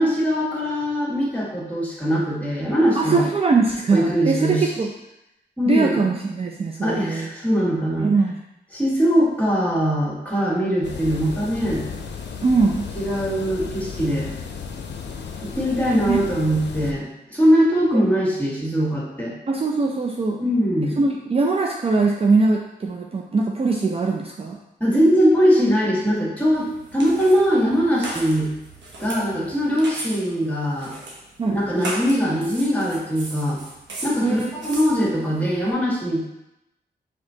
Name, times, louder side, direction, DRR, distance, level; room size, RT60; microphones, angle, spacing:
voice 1, 0.0-3.2 3.9-4.7 5.6-6.0 6.8-8.1 8.7-11.8 13.0-14.3 15.4-19.3 20.4-21.0 24.8-28.5 29.0-30.9 31.4-33.6 34.0-36.2, equal, 10° left, -4 dB, 1.5 m, -21 dB
voice 2, 2.9-4.9 5.7-7.3 8.0-8.4 12.4-12.9 16.1-16.2 17.9-18.0 19.5-20.4 21.0-24.6 31.4-31.6 34.2-34.6, right 4 dB, 35° right, 0 dB, 0.4 m, -21 dB
sound 1, 10.8-16.9, left 6 dB, 80° left, 0.5 m, -34 dB
sound 2, 26.5-35.7, right 2 dB, 85° right, 0.9 m, -37 dB
4.8 x 3.5 x 2.7 m, 0.88 s
cardioid pair, 70°, 18 cm